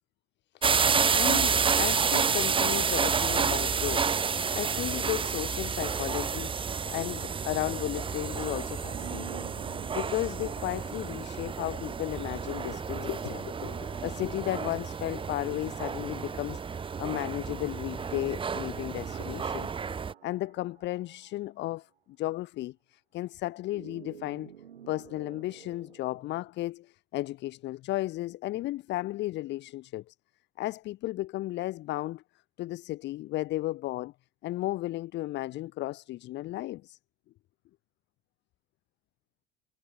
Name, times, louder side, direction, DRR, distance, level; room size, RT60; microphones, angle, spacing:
sound 1, 0.6-20.1, right 6 dB, 20° right, 0.6 m, -30 dB
voice 1, 1.1-9.4 9.9-16.6 17.0-19.7 20.2-21.9 22.2-24.5 24.9-30.1 30.6-32.2 32.6-34.1 34.4-37.0, left 16 dB, 40° left, 0.4 m, -34 dB
Sci-fi Scan Alien Bladerunner, 8.8-12.2 13.6-16.4 19.0-21.6 23.7-26.5, right 9 dB, 90° right, 0.9 m, -50 dB
hypercardioid pair, 65°, 30 cm